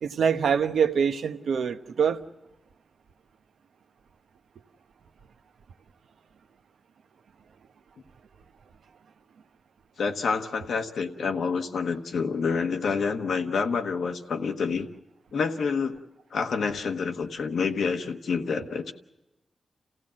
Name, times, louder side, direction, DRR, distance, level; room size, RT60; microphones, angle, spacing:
voice 1, 0.0-2.2, right 7 dB, 90° right, 0.9 m, -24 dB
voice 2, 10.0-14.9 15.3-16.0 16.3-18.9, left 5 dB, 80° left, 1.2 m, -28 dB
28.5 x 16.0 x 7.5 m
wide cardioid pair, 115°, 0 cm